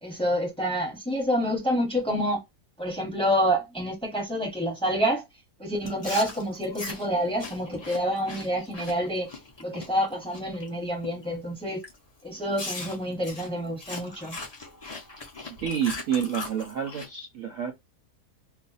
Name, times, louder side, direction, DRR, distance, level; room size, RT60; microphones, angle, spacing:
voice 1, 0.0-2.4 2.8-5.2 5.6-9.3 9.6-11.8 12.2-14.4, equal, 5° left, 1.0 m, -28 dB
Chewing mastication, 5.8-10.7 11.0-11.4 11.8-12.0 12.6-17.1, left 3 dB, 40° left, 0.3 m, -40 dB
voice 2, 15.6-17.7, right 8 dB, 65° right, 0.9 m, -28 dB
2.5 x 2.4 x 3.9 m
omnidirectional pair, 1.7 m